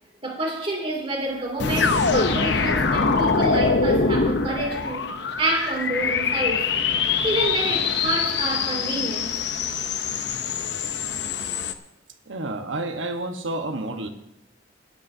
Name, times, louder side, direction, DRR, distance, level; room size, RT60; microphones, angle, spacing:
voice 1, 0.2-5.1 5.4-6.7 7.2-9.3, right 1 dB, 30° right, 2.7 m, -28 dB
sound 1, 1.6-11.7, left 5 dB, 60° left, 0.8 m, -24 dB
voice 2, 12.3-14.1, right 2 dB, 80° right, 1.3 m, -30 dB
21.5 x 10.5 x 2.8 m
head